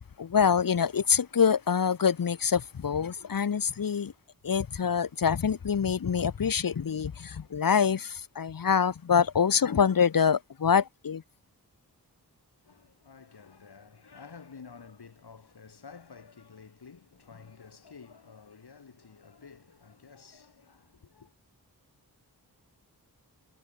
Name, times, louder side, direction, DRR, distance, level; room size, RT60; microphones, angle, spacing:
voice 1, 0.2-4.1 4.4-11.2, left 7 dB, 60° left, 1.1 m, -25 dB
voice 2, 12.6-21.3, left 5 dB, 80° left, 6.9 m, -51 dB
cardioid pair, 45°, 38 cm